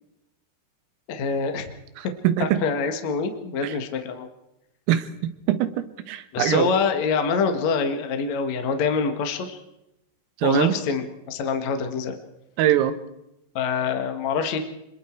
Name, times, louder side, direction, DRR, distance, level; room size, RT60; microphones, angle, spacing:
voice 1, 1.1-1.7 2.4-4.3 6.3-9.6 10.4-12.2 13.5-14.6, left 5 dB, 50° left, 6 dB, 2.2 m, -25 dB
voice 2, 2.0-2.7 3.6-3.8 4.9-5.1 5.5-6.8 10.4-10.8 12.6-13.0, right 11 dB, 90° right, 12 dB, 4.0 m, -22 dB
26.5 x 22.0 x 4.7 m, 0.87 s
omnidirectional pair, 5.7 m